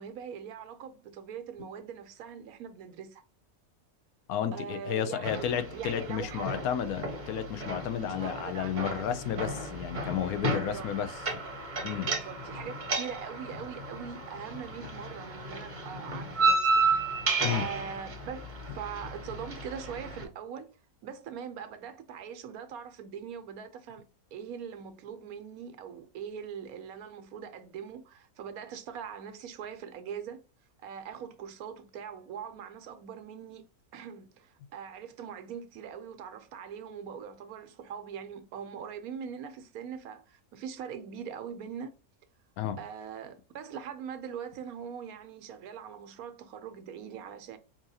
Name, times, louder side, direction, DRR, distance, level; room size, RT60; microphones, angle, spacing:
voice 1, 0.0-3.2 4.5-6.7 8.0-9.2 10.5-10.9 12.1-16.7 17.1-17.2 17.5-20.7 21.0-30.4 30.8-33.6 33.9-41.9 42.8-47.6, right 7 dB, 75° right, 1.1 m, -42 dB
voice 2, 4.3-11.1 11.8-12.1 17.4-17.6 42.6-42.8, left 9 dB, 75° left, 1.0 m, -32 dB
sound 1, 5.2-20.2, right 3 dB, 35° right, 1.1 m, -33 dB
4.7 x 2.8 x 2.7 m
omnidirectional pair, 1.6 m